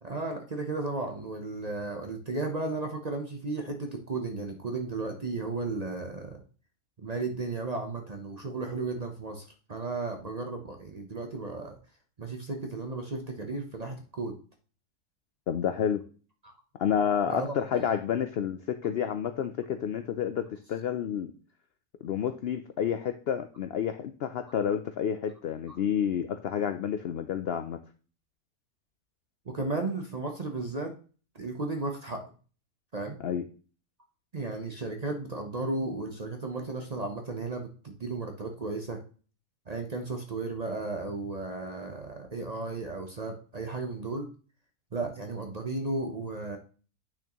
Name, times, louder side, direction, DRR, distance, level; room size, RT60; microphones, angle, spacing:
voice 1, 0.0-6.4 7.0-11.8 12.2-14.3 16.4-16.5 17.3-17.5 25.7-25.8 29.5-31.0 31.3-32.2 32.9-33.2 34.3-39.0 39.7-44.3 44.9-46.6, right 3 dB, 40° right, 3 dB, 0.6 m, -34 dB
voice 2, 15.5-16.0 16.8-21.3 22.0-27.8 33.2-33.4, left 8 dB, 80° left, 9 dB, 0.5 m, -29 dB
8.6 x 6.2 x 2.9 m, 0.39 s
omnidirectional pair, 1.6 m